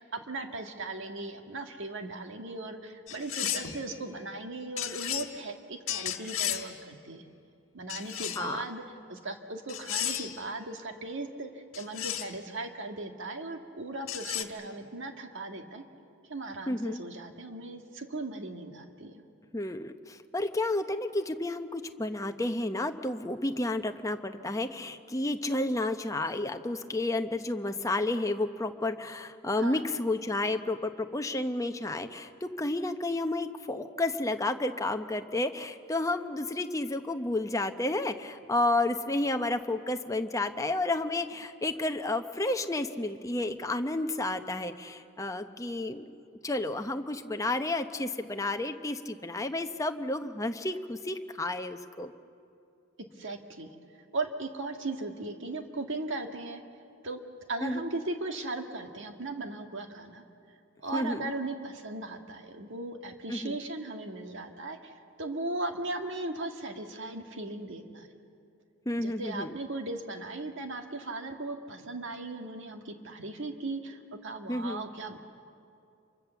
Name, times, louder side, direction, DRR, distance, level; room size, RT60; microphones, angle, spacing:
voice 1, 0.0-7.2 7.7-8.8 9.1-15.8 16.3-19.2 29.6-29.8 53.2-53.7 54.1-56.6 57.0-57.2 57.5-60.2 60.8-64.9 65.2-68.1 69.0-75.2, right 2 dB, 60° right, 5 dB, 1.8 m, -37 dB
sound 1, 3.1-3.8 4.8-5.3 5.9-6.7 7.9-8.6 9.7-10.4 11.7-12.4 14.1-14.4, left 11 dB, 65° left, 1.6 m, -34 dB
voice 2, 16.7-17.0 19.5-46.1 46.4-52.1 57.6-57.9 60.9-61.3 63.3-63.6 68.9-69.5 74.5-74.8, left 2 dB, 15° left, 6 dB, 0.8 m, -31 dB
27.5 x 24.0 x 7.0 m, 2.5 s
head